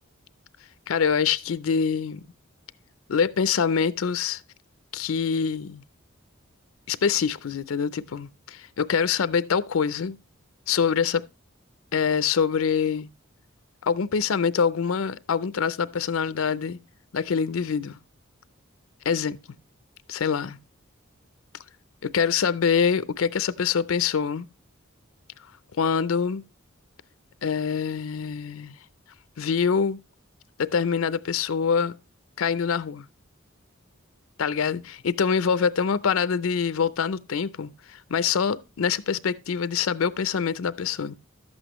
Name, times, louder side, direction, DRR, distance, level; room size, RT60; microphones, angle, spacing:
voice 1, 0.9-2.2 3.1-4.4 4.9-5.8 6.9-10.2 10.7-11.3 11.9-13.1 13.8-16.8 17.1-18.0 19.1-19.4 20.1-20.6 22.0-24.5 25.8-26.4 27.4-28.8 29.4-30.0 30.6-31.9 32.4-33.1 34.4-41.2, left 6 dB, 80° left, 0.5 m, -25 dB
12.0 x 8.0 x 3.0 m
head